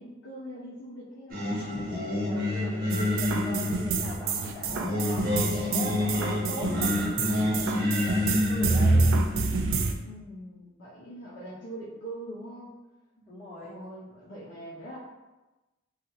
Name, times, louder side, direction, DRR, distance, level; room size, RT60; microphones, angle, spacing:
voice 1, 0.0-1.9 10.0-12.8 13.6-15.0, right 1 dB, 60° left, -8 dB, 0.6 m, -42 dB
Singing, 1.3-9.8, left 1 dB, 45° right, 0.9 m, -29 dB
voice 2, 2.2-9.0 13.1-13.8, left 1 dB, 35° left, -11 dB, 1.4 m, -41 dB
sound 1, 2.9-9.9, right 3 dB, 70° right, 0.3 m, -27 dB
2.9 x 2.3 x 2.9 m, 1.1 s
head